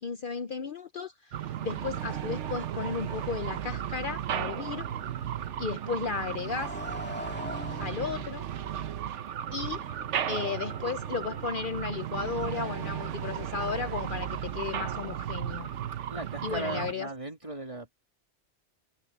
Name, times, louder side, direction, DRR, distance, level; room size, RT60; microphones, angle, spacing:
voice 1, 0.0-4.9 5.6-6.8 7.8-8.5 9.5-9.8 10.3-15.7 16.4-17.1, left 5 dB, 55° left, 0.8 m, -34 dB
sound 1, 1.3-16.9, right 10 dB, 90° right, 1.1 m, -35 dB
Motorcycle, 4.0-11.5, left 1 dB, 10° left, 2.6 m, -45 dB
voice 2, 16.1-17.9, right 1 dB, 30° right, 2.5 m, -38 dB
omnidirectional pair, 1.2 m